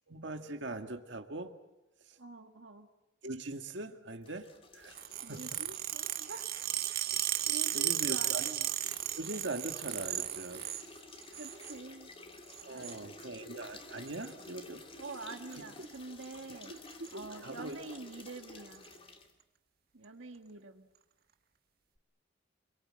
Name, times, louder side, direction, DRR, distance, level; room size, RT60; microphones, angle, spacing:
voice 1, 0.1-1.5 2.1-2.2 3.2-4.5 4.7-4.9 5.3-5.6 7.7-8.5 9.2-10.6 12.7-14.8 15.5-15.9 16.5-17.8, right 2 dB, 70° right, 5 dB, 2.0 m, -41 dB
voice 2, 2.2-2.9 5.2-6.5 7.5-8.7 11.3-12.1 12.7-13.1 15.0-16.7 17.1-18.8 19.9-20.9, right 3 dB, 90° right, 5 dB, 1.8 m, -46 dB
sound 1, 4.2-19.3, left 2 dB, 30° left, 2.5 m, -52 dB
sound 2, 4.9-10.9 11.2-11.8 12.5-13.0 14.1-14.3 15.3-15.5 15.8-16.0 16.2-16.3 16.6-17.1 17.7-17.8 18.7-18.9, right 13 dB, 50° right, 1.4 m, -35 dB
29.0 x 23.5 x 7.7 m, 0.99 s
head